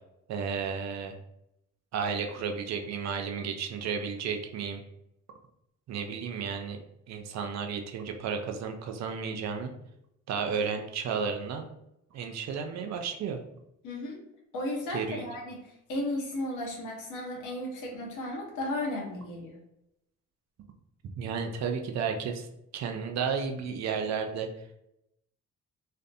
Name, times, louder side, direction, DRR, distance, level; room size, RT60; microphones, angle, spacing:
voice 1, 0.3-1.1 1.9-4.8 5.9-9.7 10.3-11.7 12.1-13.4 14.9-15.2 21.2-22.5 22.7-24.5, right 6 dB, 60° right, 5 dB, 0.5 m, -33 dB
voice 2, 13.8-14.2 14.5-19.5, left 1 dB, 85° left, -1 dB, 0.8 m, -34 dB
2.5 x 2.0 x 2.5 m, 0.81 s
cardioid pair, 90°, 30 cm